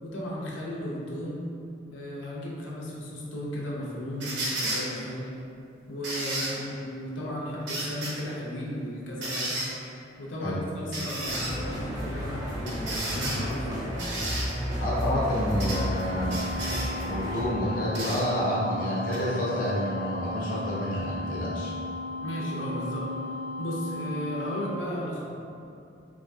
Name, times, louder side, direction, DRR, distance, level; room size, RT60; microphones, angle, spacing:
voice 1, 0.0-1.4 1.9-5.3 5.9-9.6 10.2-14.0 22.2-23.1 23.6-25.3, equal, 90° left, -5 dB, 0.6 m, -35 dB
sound 1, 4.2-4.8 6.0-6.5 7.7-8.1 9.2-9.7 10.9-11.5 12.7-13.4 14.0-14.5 15.6-15.8 16.3-16.9 17.9-18.2 19.1-19.2, right 2 dB, 70° right, 0.6 m, -32 dB
sound 2, 11.3-17.4, equal, 20° right, 0.3 m, -32 dB
voice 2, 14.8-16.4 17.1-21.7, equal, 45° left, -6 dB, 0.6 m, -28 dB
sound 3, 15.6-24.6, left 2 dB, 5° left, 0.7 m, -36 dB
3.4 x 2.7 x 2.7 m, 2.5 s
head